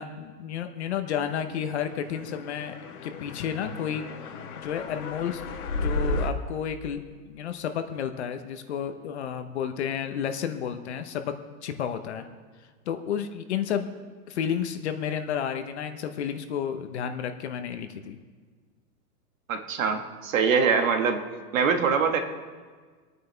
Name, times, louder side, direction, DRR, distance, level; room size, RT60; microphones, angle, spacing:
voice 1, 0.0-4.0 4.6-5.4 5.8-7.0 7.3-11.3 11.6-12.3 12.9-13.9 14.3-18.2, left 8 dB, 45° left, 8 dB, 0.9 m, -31 dB
sound 1, 1.8-6.3, left 2 dB, 65° left, 1.7 m, -33 dB
voice 2, 19.5-21.2 21.5-22.2, right 5 dB, 50° right, 5 dB, 1.6 m, -23 dB
25.5 x 9.4 x 3.4 m, 1.5 s
hypercardioid pair, 165°, 49 cm